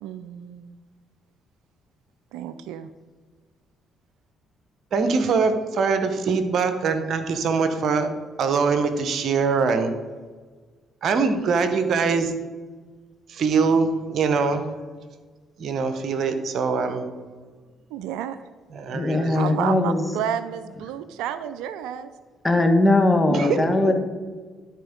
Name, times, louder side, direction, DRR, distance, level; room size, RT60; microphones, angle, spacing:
voice 1, 0.0-0.8 2.3-2.9 17.9-18.4 19.3-22.1, right 10 dB, 75° right, 13 dB, 0.3 m, -31 dB
voice 2, 4.9-8.1 8.4-9.9 11.0-12.3 13.3-14.7 15.6-17.1 18.7-19.4 23.3-23.6 23.8-23.9, right 5 dB, 60° right, 9 dB, 0.9 m, -23 dB
voice 3, 18.9-20.0 22.4-23.9, left 2 dB, 15° left, 5 dB, 1.5 m, -19 dB
12.0 x 4.4 x 5.1 m, 1.4 s
hypercardioid pair, 50°, 0 cm